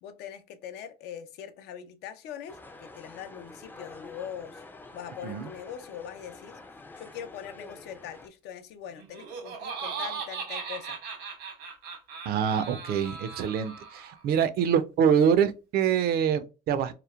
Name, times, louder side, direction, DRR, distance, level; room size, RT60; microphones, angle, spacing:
voice 1, 0.0-4.6 4.9-6.6 7.0-11.0, left 9 dB, 80° left, 0.5 m, -42 dB
sound 1, 2.5-8.3, left 2 dB, 10° left, 0.3 m, -47 dB
Laughter, 9.0-14.2, right 5 dB, 90° right, 1.1 m, -38 dB
voice 2, 12.3-16.9, right 8 dB, 65° right, 0.4 m, -25 dB
2.9 x 2.1 x 2.3 m
cardioid pair, 110°, 17 cm